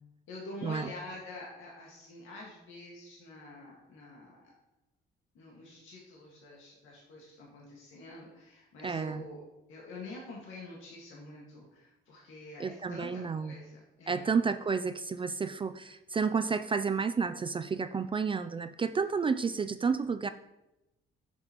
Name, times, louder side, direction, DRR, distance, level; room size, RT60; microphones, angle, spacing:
voice 1, 0.3-4.5 5.3-9.4 9.7-14.4, left 2 dB, 85° left, -3 dB, 1.9 m, -47 dB
voice 2, 8.8-9.2 12.6-13.6 14.1-20.3, right 5 dB, 25° right, 10 dB, 0.4 m, -31 dB
9.5 x 7.0 x 3.0 m, 0.94 s
cardioid pair, 90°, 20 cm